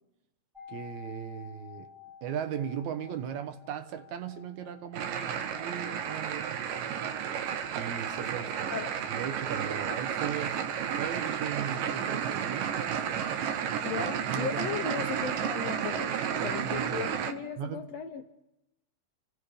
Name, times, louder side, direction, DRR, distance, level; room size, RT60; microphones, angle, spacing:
sound 1, 0.5-10.3 10.5-10.6, left 8 dB, ahead, 0.4 m, -53 dB
voice 1, 0.7-1.9 2.2-6.7 7.8-8.8 9.2-10.6 11.0-12.7 13.9-14.0 14.3-15.1 16.4-17.1 17.6-17.9, right 8 dB, 65° right, 2.3 m, -38 dB
sound 2, 4.9-17.3, right 8 dB, 85° right, 2.7 m, -32 dB
voice 2, 13.8-18.2, left 8 dB, 70° left, 1.7 m, -37 dB
30.0 x 17.0 x 5.1 m
omnidirectional pair, 3.8 m